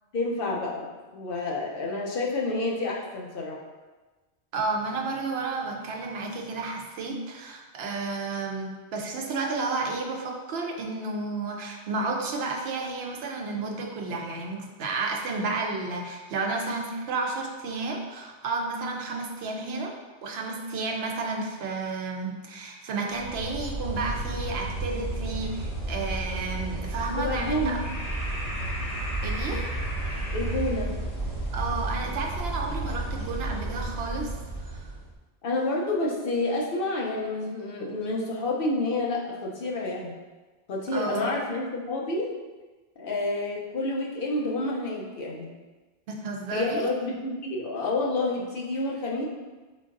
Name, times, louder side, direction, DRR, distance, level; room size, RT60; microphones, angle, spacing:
voice 1, 0.1-3.6 27.2-27.8 30.3-30.9 35.4-40.1 40.7-42.3 43.0-45.5 46.5-49.2, left 2 dB, 60° left, -2 dB, 0.9 m, -29 dB
voice 2, 4.5-19.9 20.2-27.8 29.2-29.7 31.5-34.3 34.7-34.9 40.9-41.3 46.1-46.9, right 3 dB, 70° right, 1 dB, 0.8 m, -32 dB
sound 1, 23.1-35.1, right 1 dB, 30° left, 1.4 m, -32 dB
3.8 x 3.7 x 2.5 m, 1.2 s
omnidirectional pair, 1.1 m